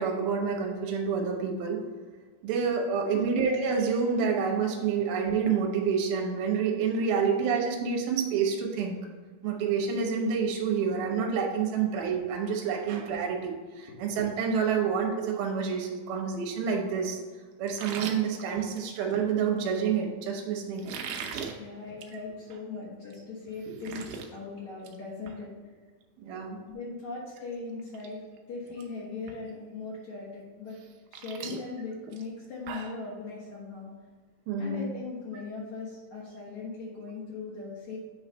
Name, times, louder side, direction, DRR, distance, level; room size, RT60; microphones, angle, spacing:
voice 1, 0.0-1.8 2.4-9.0 9.4-17.2 17.6-20.8 26.2-26.6 34.5-34.8, right 6 dB, 70° right, 1 dB, 2.6 m, -28 dB
sound 1, 17.7-19.3 20.8-21.5 21.9-22.2 22.5-22.6 23.1-23.2 23.5-24.3 24.6-25.0 25.3-25.4 27.2-27.3 27.8-28.1 28.4-28.8 29.3-29.4 30.7-33.0, right 6 dB, 85° right, 2.0 m, -39 dB
voice 2, 21.6-25.7 26.3-30.8 31.1-33.9 34.6-38.0, left 3 dB, 65° left, -7 dB, 1.8 m, -39 dB
8.6 x 3.2 x 5.2 m, 1.4 s
omnidirectional pair, 5.1 m